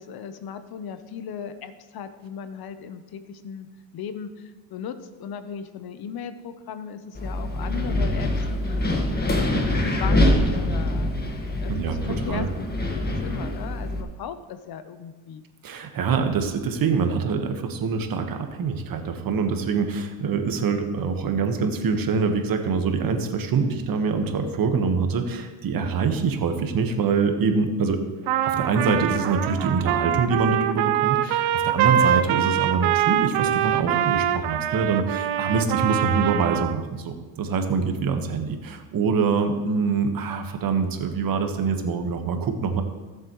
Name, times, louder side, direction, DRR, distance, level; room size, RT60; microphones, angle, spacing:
voice 1, 0.0-3.7 3.9-9.0 9.8-15.4 31.6-31.7, left 7 dB, 60° left, 10 dB, 1.0 m, -37 dB
Wind, 7.1-14.0, left 1 dB, 20° left, 1.7 m, -24 dB
voice 2, 15.6-28.0 28.4-42.8, right 5 dB, 55° right, 6 dB, 1.5 m, -25 dB
Trumpet, 28.3-36.8, right 11 dB, 70° right, 0.7 m, -24 dB
16.5 x 7.4 x 3.2 m, 1.2 s
supercardioid pair, 90°, 43 cm